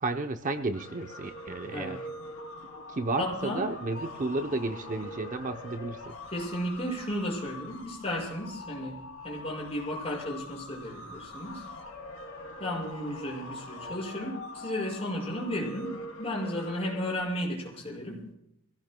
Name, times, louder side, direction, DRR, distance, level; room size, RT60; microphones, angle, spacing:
voice 1, 0.0-2.0 2.9-6.2, right 2 dB, 40° right, 6 dB, 0.7 m, -32 dB
sound 1, 0.7-17.2, left 1 dB, 90° left, 2.5 m, -43 dB
voice 2, 3.2-3.7 6.3-11.6 12.6-18.2, left 1 dB, 30° left, -2 dB, 5.7 m, -34 dB
27.5 x 17.0 x 2.2 m, 0.82 s
head